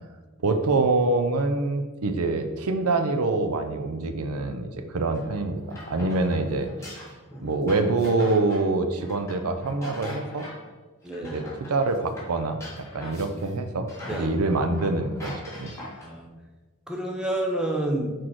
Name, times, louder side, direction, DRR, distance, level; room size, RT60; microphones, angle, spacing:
voice 1, 0.4-7.1 7.4-10.5 11.3-15.7, right 3 dB, 85° right, 7 dB, 0.6 m, -25 dB
sound 1, 5.1-10.7 11.0-13.5 13.9-16.2, left 1 dB, 15° left, 1.9 m, -42 dB
voice 2, 11.0-11.4 13.1-13.2 14.1-14.3 16.0-16.3 16.9-18.1, right 1 dB, 5° right, 0 dB, 0.8 m, -29 dB
6.1 x 4.6 x 4.6 m, 1.3 s
head